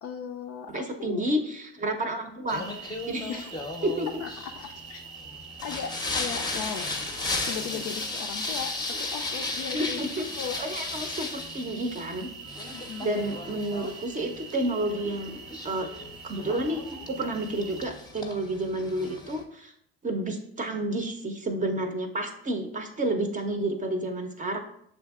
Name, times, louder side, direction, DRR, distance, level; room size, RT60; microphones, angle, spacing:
voice 1, 0.0-1.2 3.3-3.5 4.2-5.0 5.6-6.9 7.5-10.0 10.3-10.6 12.7-13.3, left 7 dB, 55° left, 2 dB, 0.4 m, -37 dB
voice 2, 0.7-3.4 3.8-4.2 9.7-10.3 10.6-12.3 13.0-15.4 15.6-15.9 16.2-16.8 17.1-19.7 20.0-24.6, right 1 dB, 25° right, 5 dB, 0.6 m, -30 dB
Singing, 2.5-19.4, left 2 dB, 15° left, 0.6 m, -36 dB
sound 1, 2.5-17.9, right 6 dB, 80° right, 0.8 m, -45 dB
7.1 x 2.6 x 2.3 m, 0.71 s
hypercardioid pair, 70°, 31 cm